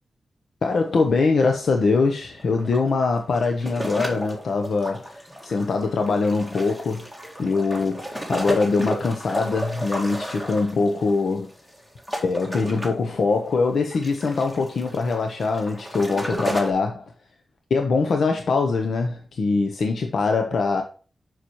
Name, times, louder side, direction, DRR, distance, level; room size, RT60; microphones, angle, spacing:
voice 1, 0.6-7.0 7.4-11.5 12.2-17.1 17.7-20.8, left 4 dB, 75° left, 0.8 m, -23 dB
sound 1, 0.7-0.8 1.1-1.2 2.2-16.7, equal, 10° left, 1.8 m, -33 dB
7.0 x 5.8 x 3.0 m
wide cardioid pair, 135°, 0 cm